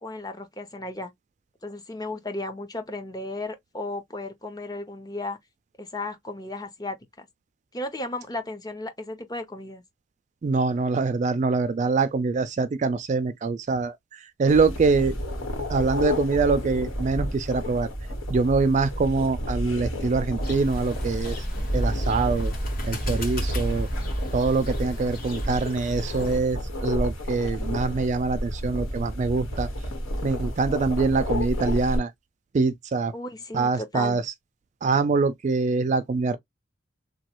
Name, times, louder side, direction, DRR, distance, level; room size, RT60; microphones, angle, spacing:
voice 1, 0.0-1.1 1.6-5.4 5.8-7.3 7.7-9.8 33.1-34.2, left 2 dB, 20° left, 0.6 m, -35 dB
voice 2, 10.4-15.2 15.7-17.9 18.3-21.5 21.7-22.5 22.9-23.9 24.3-29.7 30.2-32.1 32.5-33.1 33.5-34.3 34.8-36.4, right 4 dB, 35° right, 0.3 m, -24 dB
sound 1, 14.5-32.0, equal, 80° left, 1.3 m, -30 dB
sound 2, 20.4-26.4, left 4 dB, 45° left, 1.3 m, -42 dB
3.0 x 2.2 x 2.9 m
head